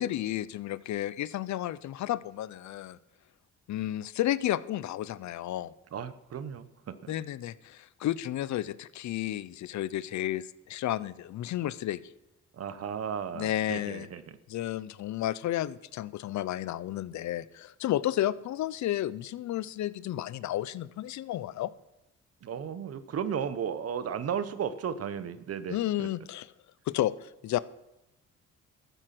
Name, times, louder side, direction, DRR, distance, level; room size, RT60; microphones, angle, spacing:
voice 1, 0.0-3.0 3.7-5.7 7.1-12.0 13.3-14.1 14.5-21.7 25.7-26.5 26.9-27.6, left 13 dB, 70° left, 18 dB, 0.6 m, -32 dB
voice 2, 5.9-7.1 12.5-14.4 22.4-26.1, right 7 dB, 55° right, 13 dB, 1.0 m, -35 dB
14.0 x 7.9 x 6.0 m, 0.91 s
cardioid pair, 90°, 30 cm